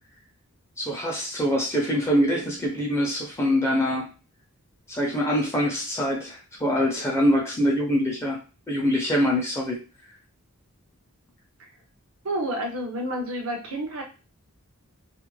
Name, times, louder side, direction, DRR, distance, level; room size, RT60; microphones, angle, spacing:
voice 1, 0.8-4.1 4.9-8.4 8.7-9.8, equal, 10° left, -2 dB, 0.6 m, -24 dB
voice 2, 12.2-14.0, right 1 dB, 65° right, 2 dB, 0.6 m, -29 dB
2.4 x 2.0 x 3.1 m, 0.33 s
head